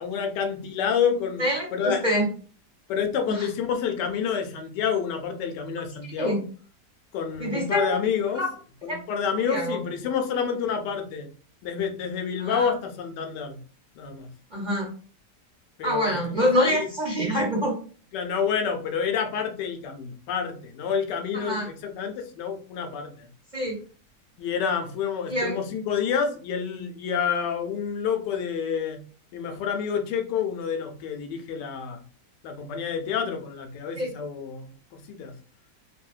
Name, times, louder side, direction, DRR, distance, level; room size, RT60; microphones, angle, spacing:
voice 1, 0.0-1.5 1.7-2.0 2.9-6.4 7.1-8.4 8.8-11.3 11.6-13.6 14.0-14.3 15.8-16.9 18.1-23.3 24.4-29.0 29.3-32.0 32.4-34.7 35.1-35.3, left 7 dB, 85° left, 5 dB, 1.2 m, -28 dB
voice 2, 1.4-2.3 3.3-3.5 6.2-6.4 7.4-7.9 8.3-8.5 9.5-9.8 12.4-12.7 14.5-14.9 15.8-17.7 21.3-21.7 23.5-23.8 25.3-25.5 33.9-34.1, equal, 35° right, -5 dB, 0.7 m, -25 dB
3.1 x 2.7 x 2.4 m, 0.41 s
omnidirectional pair, 1.8 m